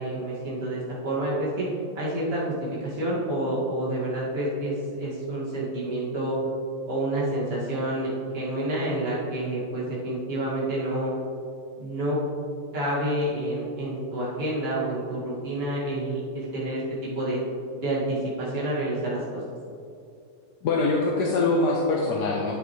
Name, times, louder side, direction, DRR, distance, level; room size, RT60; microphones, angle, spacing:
voice 1, 0.0-1.7 2.0-6.4 6.9-11.1 11.8-12.2 12.7-17.4 17.8-19.4, right 1 dB, 35° right, -8 dB, 2.3 m, -28 dB
voice 2, 20.6-22.5, left 3 dB, 70° left, -2 dB, 1.4 m, -23 dB
9.6 x 9.0 x 3.2 m, 2.4 s
omnidirectional pair, 2.0 m